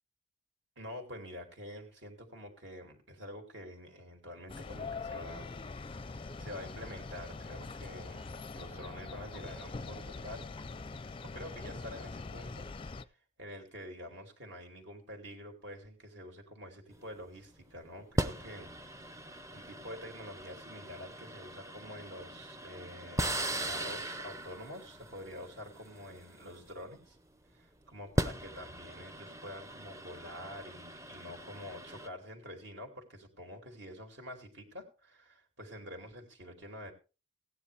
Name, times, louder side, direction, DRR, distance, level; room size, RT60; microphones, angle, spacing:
voice 1, 0.8-5.6 6.0-10.5 11.0-12.7 13.4-18.7 19.0-27.2 27.5-36.9, equal, 60° right, 3 dB, 2.9 m, -47 dB
sound 1, 4.5-13.1, left 3 dB, 25° left, 0.5 m, -43 dB
sound 2, 16.9-17.2 18.2-27.2 27.9-32.1, right 1 dB, 15° right, 0.7 m, -39 dB
16.5 x 9.9 x 3.4 m, 0.33 s
head